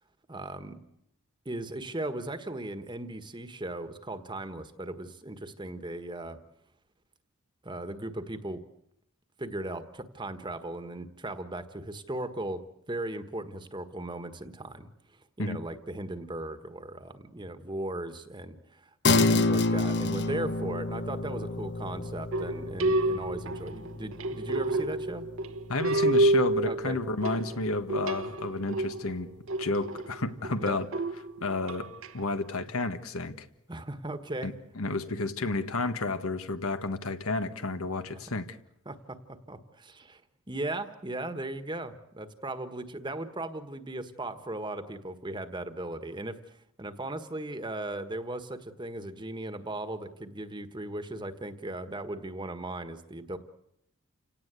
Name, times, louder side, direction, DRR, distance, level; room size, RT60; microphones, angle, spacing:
voice 1, 0.3-0.8 1.4-6.4 7.6-8.6 9.4-14.9 15.4-25.3 26.6-27.0 30.6-30.8 33.7-34.5 38.1-38.2 38.8-40.2 40.5-53.4, right 1 dB, 20° right, 1.4 m, -37 dB
sound 1, 19.0-28.8, left 3 dB, 50° left, 0.9 m, -30 dB
sound 2, 22.3-32.1, right 1 dB, 65° right, 1.2 m, -29 dB
voice 2, 25.7-29.3 29.6-30.9 31.4-33.4 34.4-38.6, left 3 dB, 75° left, 1.5 m, -31 dB
29.5 x 18.0 x 8.2 m
head